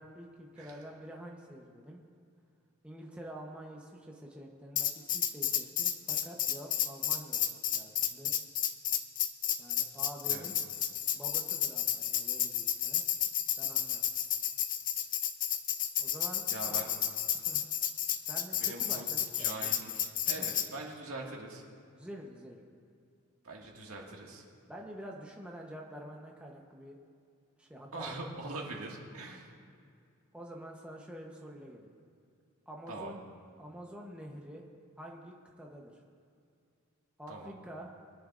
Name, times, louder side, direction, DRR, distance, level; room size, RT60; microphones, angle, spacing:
voice 1, 0.0-2.0 2.8-8.3 9.6-10.6 11.2-13.0 13.6-14.0 16.0-16.8 17.3-17.7 18.3-19.8 20.3-20.5 21.9-22.6 24.7-26.9 27.6-28.2 30.3-31.9 32.7-33.3 33.6-34.6 35.0-35.9 37.2-37.9, equal, 5° right, -1 dB, 1.0 m, -47 dB
Tambourine, 4.8-20.7, left 10 dB, 35° left, 0.6 m, -32 dB
voice 2, 16.5-16.9 18.6-19.0 19.4-21.6 23.4-24.4 27.9-29.5 32.9-33.1 37.3-37.5, right 2 dB, 70° right, -1 dB, 2.0 m, -42 dB
23.5 x 10.5 x 2.6 m, 2.4 s
head